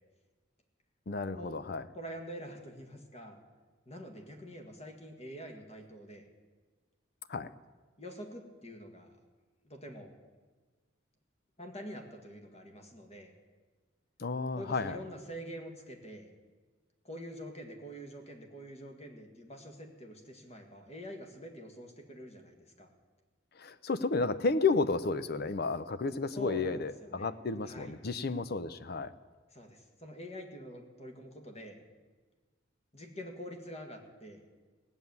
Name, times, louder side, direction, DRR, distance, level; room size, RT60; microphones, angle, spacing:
voice 1, 1.1-1.8 7.3-7.5 14.2-15.0 23.6-29.1, left 3 dB, 50° left, 13 dB, 0.6 m, -32 dB
voice 2, 1.9-3.4 3.9-6.2 8.0-9.2 9.6-10.1 11.6-13.3 14.5-16.3 17.0-22.9 26.4-27.3 27.6-27.9 29.5-31.8 32.9-34.4, equal, 30° left, 3 dB, 1.8 m, -46 dB
17.0 x 7.1 x 9.4 m, 1.4 s
head